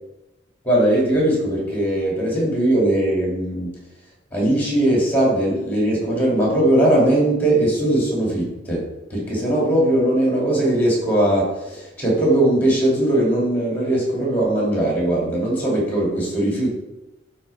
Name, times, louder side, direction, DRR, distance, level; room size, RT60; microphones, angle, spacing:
voice 1, 0.6-3.7 4.3-16.7, right 1 dB, 10° left, -3 dB, 2.3 m, -19 dB
10.5 x 4.4 x 3.4 m, 1.0 s
head